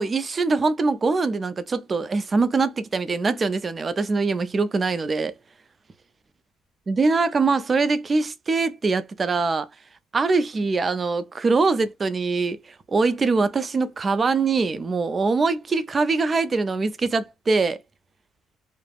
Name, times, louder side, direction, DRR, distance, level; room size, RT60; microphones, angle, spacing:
voice 1, 0.0-5.4 6.9-9.7 10.1-17.8, right 4 dB, 25° right, 0.3 m, -23 dB
3.2 x 2.0 x 2.2 m
cardioid pair, 145°, 0 cm